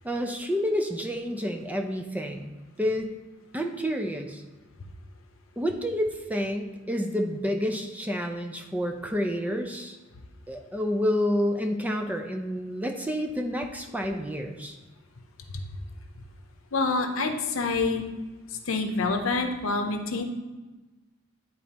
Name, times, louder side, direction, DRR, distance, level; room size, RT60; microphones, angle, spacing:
voice 1, 0.0-3.1 3.5-4.4 5.6-10.0 10.5-14.8, equal, 10° right, 3 dB, 0.5 m, -29 dB
voice 2, 16.7-18.0 18.7-20.2, left 3 dB, 80° left, 5 dB, 0.7 m, -27 dB
10.5 x 4.1 x 2.9 m, 1.2 s
head